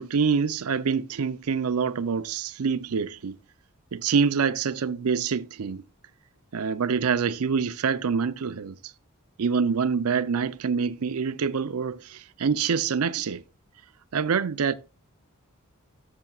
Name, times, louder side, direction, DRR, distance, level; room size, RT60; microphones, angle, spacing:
voice 1, 0.0-3.4 3.9-5.8 6.5-8.8 9.4-13.4 14.1-14.7, right 6 dB, 85° right, 0.5 m, -26 dB
13.0 x 6.6 x 2.4 m
head